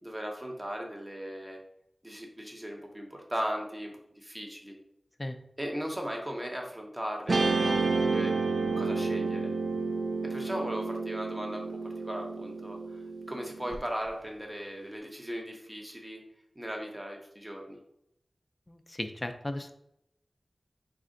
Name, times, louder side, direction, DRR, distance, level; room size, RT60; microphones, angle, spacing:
voice 1, 0.0-1.6 2.0-4.8 5.6-8.3 8.8-9.5 10.3-13.0 13.3-16.2 16.5-17.8, equal, 20° right, 1 dB, 0.9 m, -37 dB
Guitar, 7.3-13.7, right 3 dB, 70° right, 0.4 m, -30 dB
voice 2, 18.7-19.7, left 1 dB, 25° left, 6 dB, 0.4 m, -36 dB
4.2 x 2.5 x 3.7 m, 0.80 s
wide cardioid pair, 50°, 0 cm